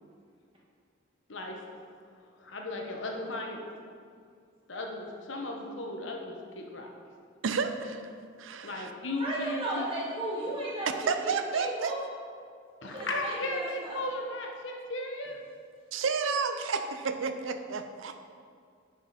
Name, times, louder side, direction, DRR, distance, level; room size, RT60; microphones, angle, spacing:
voice 1, 1.3-1.9 2.4-3.5 4.7-6.9 8.6-9.9 12.8-15.4, left 1 dB, 70° left, 1 dB, 1.1 m, -36 dB
voice 2, 7.4-8.1 8.4-8.9 11.1-11.9 15.9-18.2, right 5 dB, 80° right, 8 dB, 0.5 m, -31 dB
voice 3, 9.2-12.0 12.8-14.1, right 1 dB, 25° right, -5 dB, 1.6 m, -35 dB
9.6 x 5.0 x 4.2 m, 2.2 s
head